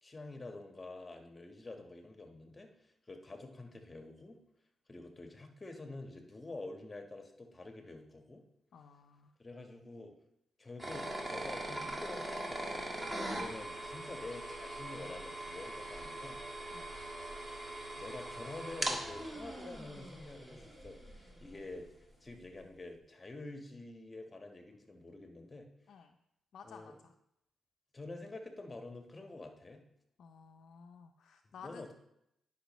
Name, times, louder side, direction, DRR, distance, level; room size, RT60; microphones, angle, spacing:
voice 1, 0.0-4.4 4.9-8.4 9.4-10.1 10.6-12.9 13.2-16.4 17.4-17.6 18.0-21.9 22.2-25.7 26.6-27.0 27.9-29.8 31.6-31.9, left 2 dB, 25° left, 4 dB, 1.3 m, -48 dB
voice 2, 8.7-9.3 16.7-16.9 25.9-26.2 26.5-27.1 30.2-31.9, left 6 dB, 70° left, 3 dB, 0.5 m, -54 dB
sound 1, 10.8-21.6, right 1 dB, 20° right, 1.8 m, -41 dB
10.0 x 5.8 x 3.1 m, 0.78 s
cardioid pair, 65°, 0 cm